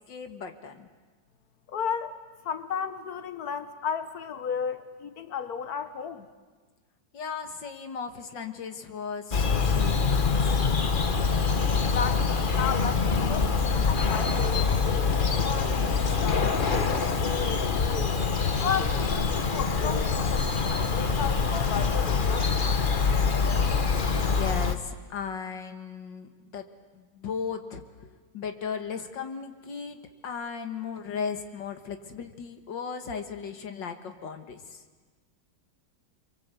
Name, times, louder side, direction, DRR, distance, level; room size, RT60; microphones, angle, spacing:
voice 1, 0.1-0.9 7.1-10.6 15.4-17.5 24.1-26.7 27.0-27.8 28.3-34.8, left 6 dB, 75° left, 7 dB, 2.2 m, -37 dB
voice 2, 1.7-2.2 2.4-6.3 11.9-14.5 18.6-22.5, left 7 dB, 55° left, 10 dB, 1.8 m, -33 dB
Bird vocalization bird call bird song, 9.3-24.7, left 5 dB, 30° left, 1.1 m, -25 dB
27.5 x 23.5 x 8.2 m, 1.4 s
omnidirectional pair, 2.0 m